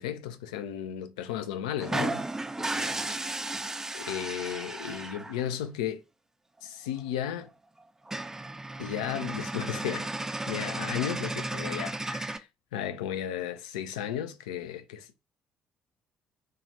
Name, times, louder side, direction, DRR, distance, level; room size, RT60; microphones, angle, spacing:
voice 1, 0.0-2.3 2.7-3.0 3.9-6.0 6.6-7.5 8.8-10.1 10.5-12.5 12.7-15.3, left 10 dB, 70° left, 0.3 m, -34 dB
sound 1, 1.8-5.4 7.0-7.1 7.4-7.5 7.8-7.9 8.1-12.4, right 2 dB, 10° right, 0.4 m, -34 dB
2.7 x 2.3 x 2.9 m
figure-of-eight pair, 50°, 4 cm